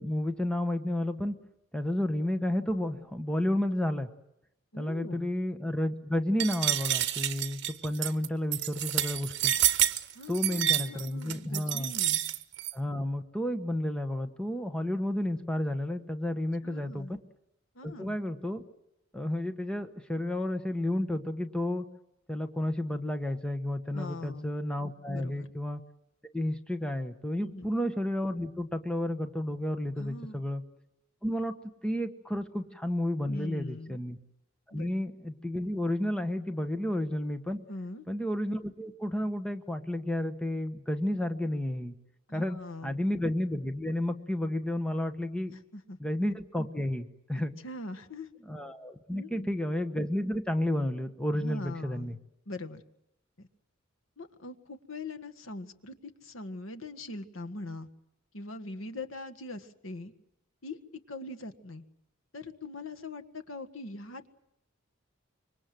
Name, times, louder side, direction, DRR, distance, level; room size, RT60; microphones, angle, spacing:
voice 1, 0.0-1.4 1.7-4.1 4.8-9.5 10.3-11.9 12.7-17.2 17.8-18.6 19.1-21.8 22.3-25.8 26.3-30.6 31.2-31.5 31.8-34.2 34.7-37.6 38.1-41.9 42.3-42.6 42.8-45.5 46.0-47.5 48.5-52.2, left 1 dB, 5° left, 8 dB, 1.3 m, -31 dB
voice 2, 4.7-5.3 10.1-12.2 16.6-17.2 17.7-18.2 23.9-24.5 25.1-25.5 27.4-27.7 30.0-30.4 33.3-34.0 34.7-34.9 37.7-38.0 42.3-43.0 45.5-46.0 47.3-48.3 49.1-49.5 51.3-52.2 52.4-52.8 53.4-53.5 54.2-57.9 58.3-60.1 60.6-60.8 61.1-61.8 62.3-64.3, left 2 dB, 75° left, 7 dB, 1.7 m, -42 dB
sound 1, 6.4-12.7, right 12 dB, 60° right, 1.3 m, -28 dB
26.0 x 24.0 x 7.8 m, 0.83 s
head